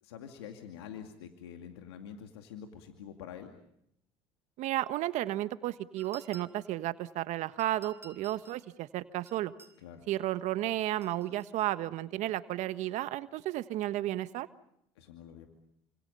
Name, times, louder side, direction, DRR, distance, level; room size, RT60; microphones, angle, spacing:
voice 1, 0.0-3.5 9.8-10.0 15.0-15.5, left 8 dB, 90° left, 4 dB, 2.4 m, -46 dB
voice 2, 4.6-9.5 10.1-14.5, right 14 dB, 65° right, 12 dB, 1.3 m, -33 dB
tapping glass, 6.0-6.8 7.6-8.6 9.3-9.8 10.8-11.7, right 2 dB, 20° right, 4.8 m, -54 dB
28.5 x 26.5 x 5.5 m, 0.75 s
hypercardioid pair, 75°, 13 cm